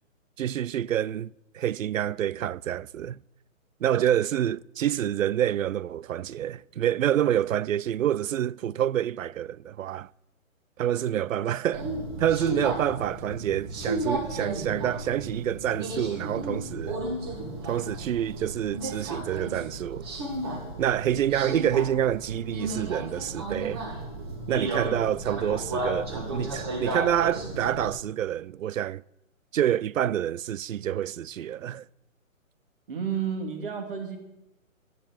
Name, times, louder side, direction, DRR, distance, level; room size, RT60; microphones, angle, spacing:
voice 1, 0.4-3.2 3.8-10.1 10.8-11.9 12.2-17.0 17.7-20.1 20.8-23.9 24.5-29.0 29.5-31.8, right 11 dB, 70° right, 0.5 m, -27 dB
Subway metro underground, 11.7-27.9, right 1 dB, 20° right, 1.6 m, -34 dB
voice 2, 32.9-34.2, right 7 dB, 40° right, 2.8 m, -31 dB
11.5 x 11.0 x 9.0 m
hypercardioid pair, 175°, 41 cm